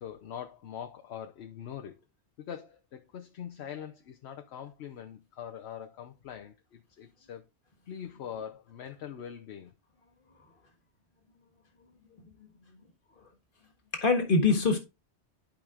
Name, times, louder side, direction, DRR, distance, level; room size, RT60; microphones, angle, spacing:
voice 1, 0.0-1.9 2.4-7.4 7.9-9.7, left 9 dB, 70° left, 0.9 m, -43 dB
voice 2, 12.1-12.5 13.2-13.3 13.9-14.8, left 3 dB, 50° left, 1.7 m, -25 dB
11.5 x 5.1 x 2.4 m
omnidirectional pair, 1.1 m